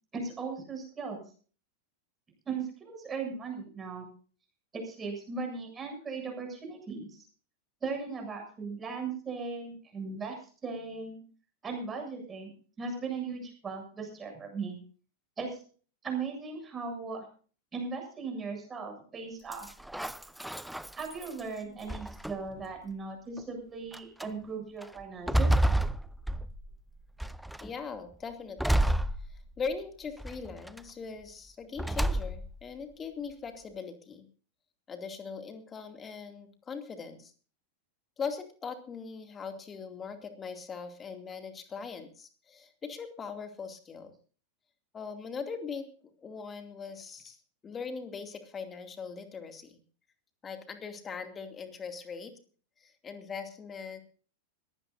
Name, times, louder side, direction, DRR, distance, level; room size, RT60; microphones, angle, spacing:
voice 1, 0.1-1.2 2.4-4.1 4.7-7.2 7.8-10.4 10.6-11.2 11.6-12.5 12.8-14.8 15.4-15.6 16.0-17.2 17.7-19.7 20.9-25.5, right 4 dB, 20° right, 3 dB, 7.6 m, -38 dB
sound 1, 19.5-21.4 21.9-22.6 23.4-23.5 23.9-24.3 24.8-26.8 27.2-27.7 28.6-29.7 30.2-30.8 31.8-32.6, right 1 dB, ahead, 0.5 m, -30 dB
voice 2, 27.6-28.9 29.3-34.2 34.9-37.3 38.2-44.1 44.9-45.9 46.2-47.4 47.6-49.8 50.4-52.3 52.8-54.0, left 5 dB, 20° left, 6 dB, 2.6 m, -40 dB
21.5 x 16.0 x 2.7 m, 0.41 s
figure-of-eight pair, 90°, 0 cm